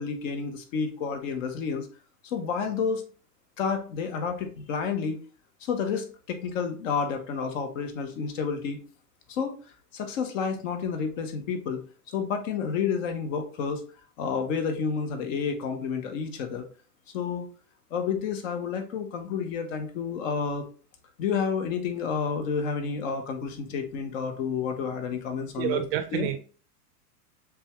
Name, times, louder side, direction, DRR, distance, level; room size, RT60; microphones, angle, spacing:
voice 1, 0.0-1.9 2.2-3.0 3.6-5.2 5.6-8.8 9.3-9.6 9.9-13.8 14.2-16.6 17.1-17.4 17.9-20.6 21.2-25.8 26.1-26.3, left 6 dB, 55° left, 1.1 m, -30 dB
voice 2, 25.6-26.4, right 11 dB, 40° right, 0.6 m, -28 dB
6.7 x 2.4 x 3.0 m
hypercardioid pair, 120°, 47 cm